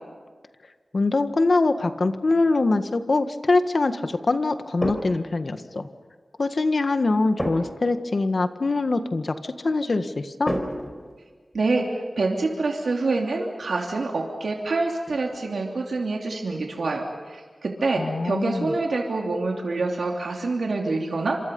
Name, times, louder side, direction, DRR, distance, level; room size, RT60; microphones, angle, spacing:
voice 1, 0.9-5.9 6.4-10.5 18.0-18.7, left 3 dB, 55° left, 8 dB, 1.6 m, -23 dB
sound 1, 4.8-5.4 7.4-7.9 10.4-11.6 15.1-15.4, equal, 10° left, 4.7 m, -30 dB
voice 2, 11.5-21.4, right 3 dB, 80° right, 0 dB, 3.0 m, -26 dB
28.5 x 26.5 x 5.5 m, 1.5 s
wide cardioid pair, 95°, 0 cm